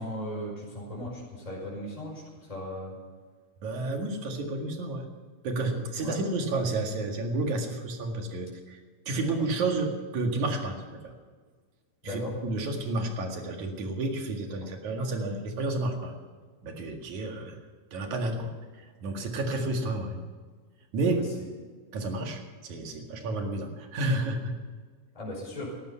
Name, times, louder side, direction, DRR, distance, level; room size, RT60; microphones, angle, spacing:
voice 1, 0.0-3.0 6.0-6.2 12.0-12.3 21.2-21.3 25.1-25.7, left 1 dB, 10° left, -4 dB, 5.4 m, -37 dB
voice 2, 3.6-5.1 5.4-8.8 9.1-11.1 12.0-16.2 16.6-17.6 17.9-20.2 20.9-21.3 21.9-24.5, right 2 dB, 75° right, 3 dB, 3.4 m, -31 dB
18.0 x 14.0 x 5.7 m, 1.5 s
omnidirectional pair, 3.4 m